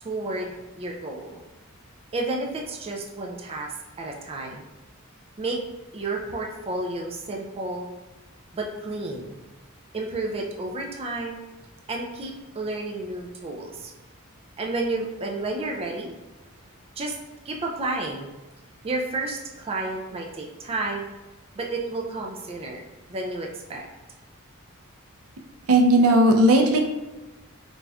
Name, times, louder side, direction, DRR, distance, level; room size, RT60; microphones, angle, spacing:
voice 1, 0.0-1.4 2.1-3.7 4.0-4.6 5.4-5.6 5.9-7.9 8.5-9.4 9.9-11.4 11.9-13.9 14.6-16.1 17.0-17.1 17.5-18.3 18.8-21.1 21.5-23.9, right 2 dB, 25° right, 0 dB, 0.4 m, -31 dB
voice 2, 25.7-26.8, right 1 dB, 80° right, 3 dB, 0.5 m, -16 dB
3.9 x 3.4 x 2.3 m, 1.1 s
head